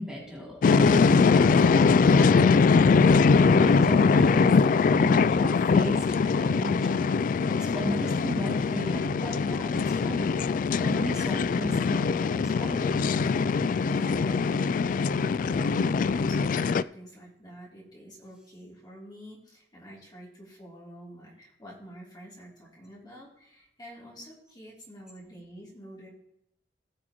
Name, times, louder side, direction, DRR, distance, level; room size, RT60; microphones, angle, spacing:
voice 1, 0.0-3.0 3.5-4.5 4.9-7.1 7.5-10.4 10.8-12.8, equal, 5° right, -5 dB, 3.1 m, -35 dB
sound 1, 0.6-16.8, left 4 dB, 50° left, 0.3 m, -22 dB
voice 2, 13.5-26.1, equal, 25° left, -5 dB, 3.2 m, -47 dB
18.5 x 6.2 x 3.1 m, 0.77 s
head